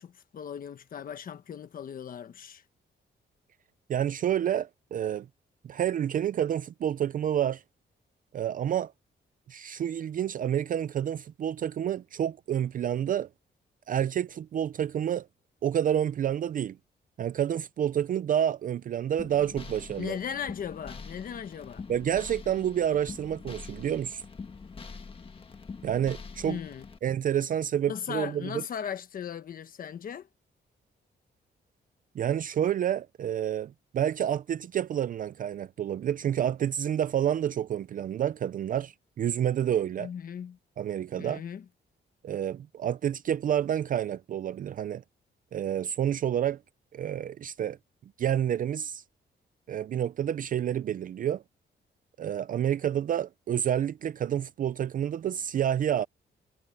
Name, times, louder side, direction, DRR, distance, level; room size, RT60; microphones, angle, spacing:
voice 1, 0.0-2.6 20.0-21.9 26.4-26.9 27.9-30.3 40.0-40.6 41.2-41.6, left 8 dB, 50° left, 1.2 m, -37 dB
voice 2, 3.9-5.3 5.6-7.6 8.3-8.9 9.5-13.3 13.9-15.3 15.6-16.8 17.2-20.2 21.9-24.2 25.8-26.6 27.0-28.6 32.2-40.1 40.8-41.4 42.2-45.0 45.5-46.6 46.9-47.8 48.2-49.0 49.7-51.4 52.2-56.1, right 10 dB, 45° right, 0.4 m, -29 dB
sound 1, 19.2-27.0, left 5 dB, 30° left, 1.6 m, -44 dB
wide cardioid pair, 175°, 19 cm